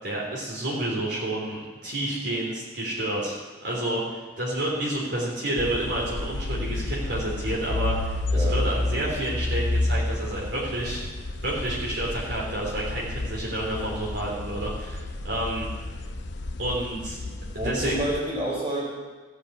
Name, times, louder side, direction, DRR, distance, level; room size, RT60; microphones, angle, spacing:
voice 1, 0.0-3.4 3.6-11.0 11.4-15.7 16.6-17.2 17.5-18.0, right 1 dB, 60° right, -5 dB, 3.5 m, -29 dB
sound 1, 5.6-18.2, left 2 dB, 60° left, 0.9 m, -30 dB
voice 2, 17.2-18.9, right 1 dB, 25° right, -5 dB, 5.1 m, -29 dB
15.5 x 6.9 x 8.0 m, 1.3 s
head